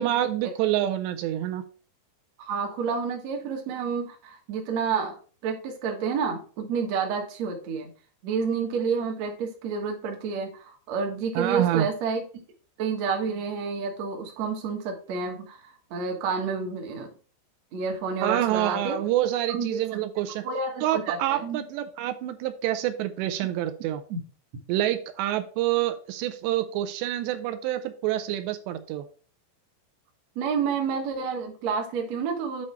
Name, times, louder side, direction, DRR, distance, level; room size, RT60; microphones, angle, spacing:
voice 1, 0.0-1.6 11.4-11.9 18.2-20.4 20.8-24.0 24.7-29.1, right 13 dB, 80° right, 10 dB, 2.6 m, -27 dB
voice 2, 2.4-5.2 5.4-7.9 8.2-12.2 12.8-17.1 17.7-19.0 19.5-19.8 20.4-21.7 24.1-24.2 30.3-32.6, right 5 dB, 65° right, 2 dB, 1.7 m, -29 dB
8.6 x 4.0 x 4.5 m, 0.41 s
omnidirectional pair, 5.2 m